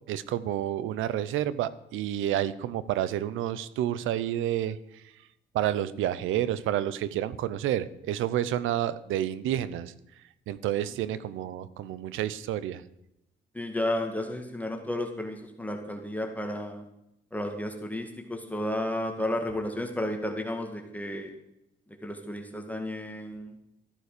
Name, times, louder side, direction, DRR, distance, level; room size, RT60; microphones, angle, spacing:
voice 1, 0.1-4.8 5.5-9.9 10.5-12.8, right 12 dB, 90° right, 17 dB, 0.9 m, -29 dB
voice 2, 13.5-16.8 17.3-21.3 22.0-23.5, left 1 dB, 5° left, 3 dB, 2.0 m, -32 dB
14.0 x 9.6 x 6.8 m, 0.83 s
cardioid pair, 90°, 20 cm